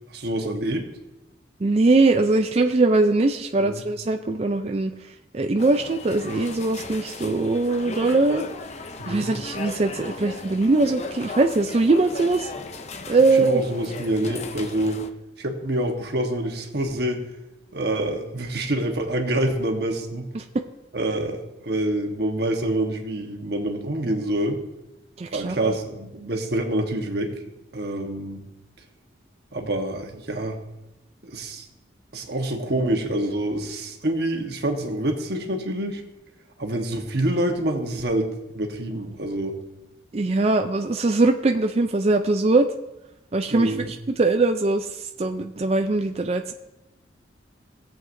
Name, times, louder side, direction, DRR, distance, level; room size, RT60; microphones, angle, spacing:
voice 1, 0.1-0.9 3.6-3.8 9.0-9.3 13.3-15.0 15.4-17.3 17.7-20.3 20.9-24.6 25.3-27.3 27.7-28.4 29.5-30.6 31.2-31.6 32.1-36.0 36.6-38.3 38.5-39.6 43.5-43.9, right 1 dB, 60° right, 3 dB, 1.3 m, -26 dB
voice 2, 1.6-4.9 5.3-8.5 9.1-12.5 13.1-13.6 20.3-20.4 25.2-25.7 40.1-42.7 43.3-46.5, right 3 dB, 35° right, 5 dB, 0.4 m, -21 dB
sound 1, 5.6-15.1, left 3 dB, 35° left, 0.5 m, -36 dB
17.5 x 7.7 x 2.6 m, 0.96 s
head